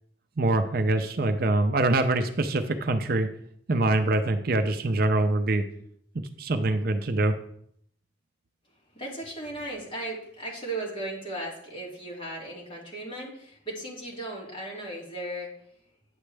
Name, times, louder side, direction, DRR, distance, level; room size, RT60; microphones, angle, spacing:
voice 1, 0.4-3.3 3.7-5.6 6.4-7.3, right 2 dB, 50° right, 8 dB, 0.5 m, -24 dB
voice 2, 8.9-15.6, right 1 dB, 30° left, -4 dB, 2.5 m, -36 dB
9.7 x 7.2 x 3.3 m, 0.68 s
head